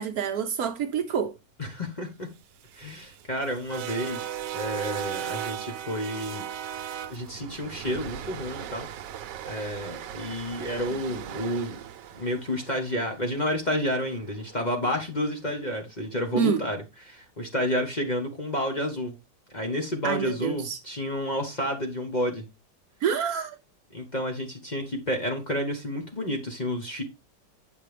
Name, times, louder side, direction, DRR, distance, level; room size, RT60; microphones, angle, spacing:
voice 1, 0.0-1.4 16.3-16.6 20.0-20.8 23.0-23.6, right 7 dB, 65° right, 1.0 m, -27 dB
voice 2, 1.6-2.3 2.7-6.5 7.1-8.9 9.4-11.8 12.2-19.1 19.5-22.4 23.9-27.0, equal, 30° left, 1.0 m, -30 dB
sound 1, 2.4-14.6, right 10 dB, 85° right, 1.3 m, -38 dB
8.2 x 5.2 x 3.3 m
omnidirectional pair, 1.9 m